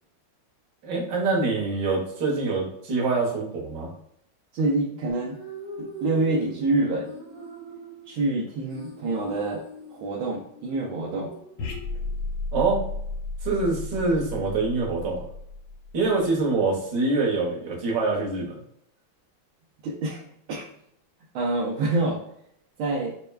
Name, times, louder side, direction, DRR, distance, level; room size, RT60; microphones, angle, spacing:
voice 1, 0.8-3.9 12.5-12.8 13.4-15.2 15.9-18.6, right 3 dB, 60° right, -2 dB, 1.6 m, -25 dB
voice 2, 4.5-5.4 5.8-7.1 8.1-9.6 9.9-11.3 19.8-20.2 20.5-20.7 21.3-22.2 22.8-23.1, right 2 dB, 75° right, -4 dB, 1.4 m, -26 dB
sound 1, 5.1-12.1, right 3 dB, 40° right, 1.2 m, -42 dB
sound 2, 11.6-16.2, left 3 dB, 70° left, 1.3 m, -34 dB
6.6 x 2.2 x 2.3 m, 0.72 s
omnidirectional pair, 2.3 m